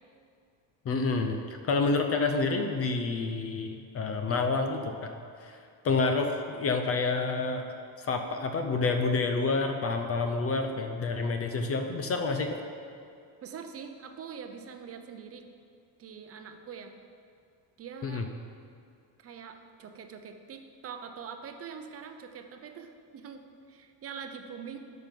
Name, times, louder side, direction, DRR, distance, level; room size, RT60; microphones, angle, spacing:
voice 1, 0.8-1.4 1.7-5.1 5.4-5.6 5.8-7.7 8.0-12.6 18.0-18.3, left 3 dB, 35° left, 5 dB, 0.6 m, -28 dB
voice 2, 13.4-15.4 16.0-16.9 17.8-18.3 19.2-24.8, right 6 dB, 30° right, 6 dB, 0.7 m, -44 dB
12.0 x 5.9 x 5.3 m, 2.3 s
cardioid pair, 160°, 44 cm